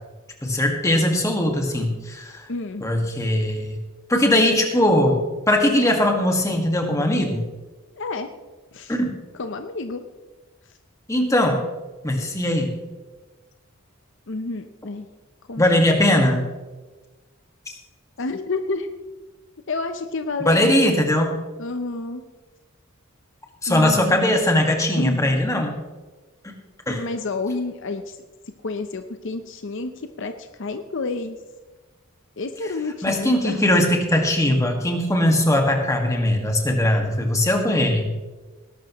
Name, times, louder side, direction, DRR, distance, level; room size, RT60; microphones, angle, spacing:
voice 1, 0.4-2.4 2.8-3.8 4.1-7.4 8.9-9.1 11.1-11.6 12.0-12.8 15.6-16.5 20.4-21.3 23.6-25.7 26.4-26.5 26.9-27.0 33.0-38.1, left 1 dB, 15° left, 3 dB, 1.7 m, -20 dB
voice 2, 2.5-2.9 8.0-8.3 8.7-9.0 9.3-10.0 14.3-15.1 15.5-15.6 18.2-18.9 19.7-21.1 21.6-22.2 23.7-24.4 24.9-25.6 26.9-28.2 28.6-31.4 32.4-33.6, left 3 dB, 60° left, 8 dB, 0.7 m, -30 dB
19.5 x 12.0 x 3.0 m, 1.2 s
head